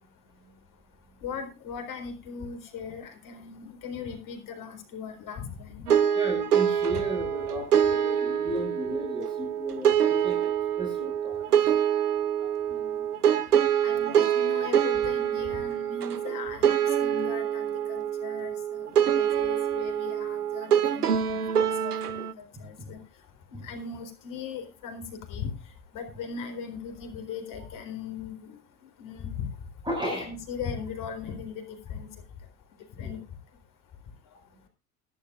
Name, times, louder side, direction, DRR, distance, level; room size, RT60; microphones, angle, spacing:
voice 1, 1.2-5.8 6.9-7.0 12.4-13.1 13.8-21.4 21.8-21.9 22.6-23.0 23.6-25.5 25.9-28.6 29.0-29.5 30.2-31.6 31.9-32.1 33.0-33.2, left 6 dB, 45° left, 5 dB, 4.1 m, -38 dB
voice 2, 5.9-10.4 10.8-11.4 21.6-21.7 22.5-22.9 29.8-30.3 33.0-33.2, equal, 10° right, 0 dB, 6.0 m, -35 dB
sound 1, 5.9-22.3, right 9 dB, 90° right, 0.7 m, -25 dB
21.0 x 11.0 x 2.4 m, 0.28 s
figure-of-eight pair, 75°, 44 cm